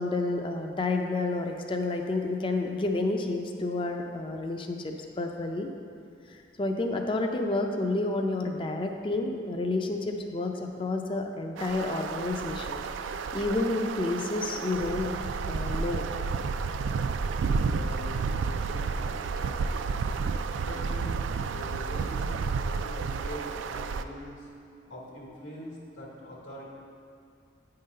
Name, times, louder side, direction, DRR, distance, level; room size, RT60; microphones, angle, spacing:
voice 1, 0.0-5.7 6.3-12.8 13.3-16.1, left 2 dB, 25° left, 3 dB, 0.4 m, -30 dB
sound 1, 11.6-24.0, right 5 dB, 85° right, 0.3 m, -31 dB
voice 2, 17.6-19.1 19.4-20.2 20.5-22.4 22.7-24.5 24.9-26.7, equal, 85° left, -4 dB, 1.9 m, -43 dB
9.3 x 3.8 x 5.4 m, 2.4 s
head